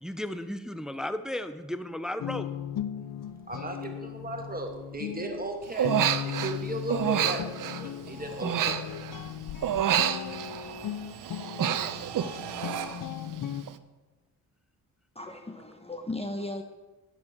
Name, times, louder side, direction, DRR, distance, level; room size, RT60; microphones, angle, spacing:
voice 1, 0.0-2.5, left 1 dB, ahead, 11 dB, 0.6 m, -34 dB
sound 1, 2.2-13.6, left 10 dB, 60° left, 0.7 m, -37 dB
sound 2, 3.0-13.2, right 9 dB, 90° right, 0.7 m, -46 dB
voice 2, 3.5-6.0 6.2-8.8 9.3-9.5 11.2-11.3, right 1 dB, 25° right, 3 dB, 2.1 m, -36 dB
Human voice, 5.8-6.6 6.9-9.3 9.6-10.9 11.2-13.0 13.3-13.7, right 10 dB, 55° right, 0.7 m, -29 dB
voice 3, 15.1-16.6, left 2 dB, 15° left, 5 dB, 0.9 m, -36 dB
11.0 x 7.5 x 4.5 m, 1.2 s
supercardioid pair, 55°, 38 cm